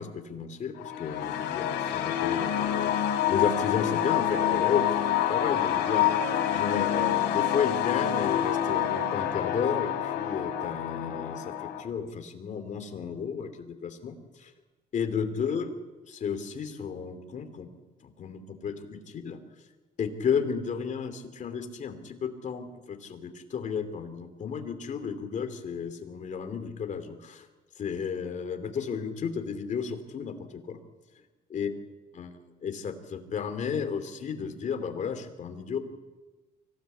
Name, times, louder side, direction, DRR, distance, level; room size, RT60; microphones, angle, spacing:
voice 1, 0.0-14.5 14.9-15.7 16.0-17.7 18.0-19.4 20.0-27.5 27.8-30.8 31.5-31.7 32.1-32.3 32.6-35.8, left 6 dB, 45° left, 8 dB, 2.9 m, -33 dB
sound 1, 0.8-11.8, left 10 dB, 90° left, 3.7 m, -27 dB
24.5 x 17.0 x 8.5 m, 1.2 s
cardioid pair, 110°, 17 cm